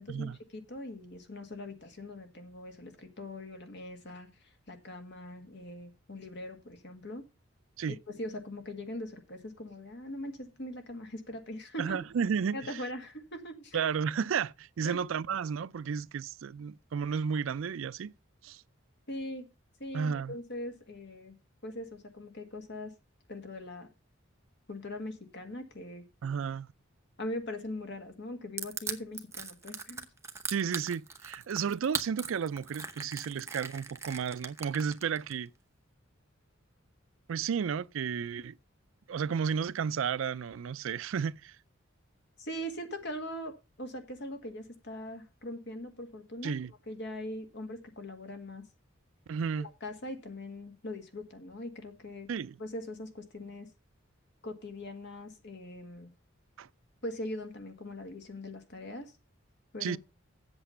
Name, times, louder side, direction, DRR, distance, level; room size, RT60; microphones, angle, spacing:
voice 1, 0.0-7.2 8.1-12.0 12.5-13.9 14.8-15.0 19.1-19.5 19.8-21.3 21.6-22.9 23.3-23.9 24.7-26.0 27.2-30.1 42.4-46.5 46.9-48.6 49.6-52.3 52.6-53.7 54.4-56.1 57.0-59.1 59.7-60.0, left 1 dB, 55° left, 1.8 m, -41 dB
voice 2, 11.8-12.8 13.7-18.1 18.4-18.6 19.9-20.3 26.2-26.7 30.5-35.5 37.3-38.6 39.1-41.6 46.4-46.7 49.3-49.7 52.3-52.6 56.6-56.7 59.8-60.0, right 6 dB, 75° right, 0.4 m, -32 dB
Crushing, 28.6-35.3, right 4 dB, 15° right, 0.8 m, -38 dB
8.1 x 7.3 x 5.5 m
head